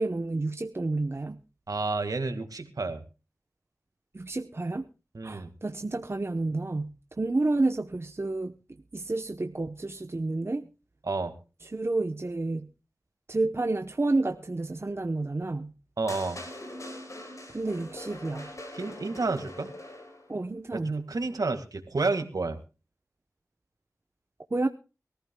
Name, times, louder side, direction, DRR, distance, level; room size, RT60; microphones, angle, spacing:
voice 1, 0.0-1.4 4.1-4.9 5.2-8.5 8.9-10.7 11.6-12.7 13.3-15.7 17.5-18.5 20.3-21.0 24.5-24.7, right 2 dB, 45° right, 7 dB, 0.8 m, -30 dB
voice 2, 1.7-3.0 5.1-5.5 11.1-11.3 16.0-16.4 18.8-19.7 20.7-22.6, right 3 dB, 80° right, 7 dB, 1.8 m, -30 dB
sound 1, 16.1-20.3, left 1 dB, 60° left, 4.1 m, -42 dB
23.0 x 14.5 x 2.2 m, 0.32 s
wide cardioid pair, 50°, 6 cm